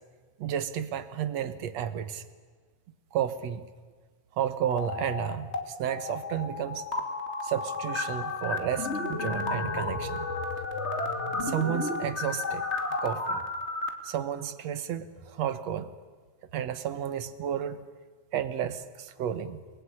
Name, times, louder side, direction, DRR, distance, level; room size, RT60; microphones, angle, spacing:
voice 1, 0.4-2.2 3.1-3.7 4.3-6.9 7.4-10.3 11.4-12.6 13.0-13.4 14.0-15.9 16.5-17.8 18.3-19.6, right 9 dB, 65° right, 12 dB, 2.3 m, -32 dB
sound 1, 4.7-5.6 5.9-13.9, left 3 dB, 25° left, 2.6 m, -32 dB
28.5 x 21.0 x 9.9 m, 1.5 s
omnidirectional pair, 3.3 m